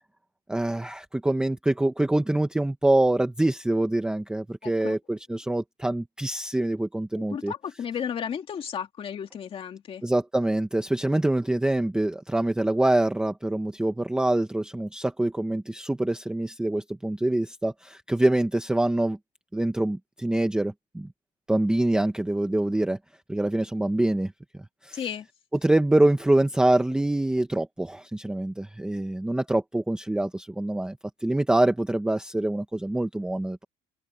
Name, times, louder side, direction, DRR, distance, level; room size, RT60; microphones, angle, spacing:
voice 1, 0.5-7.5 10.0-19.2 19.5-21.1 21.5-23.0 23.3-24.3 24.8-25.0 25.6-33.6, right 1 dB, 5° right, 0.8 m, -25 dB
voice 2, 4.6-5.0 7.1-10.0 24.9-25.3, left 8 dB, 30° left, 2.2 m, -34 dB
open air
cardioid pair, 175°, 19 cm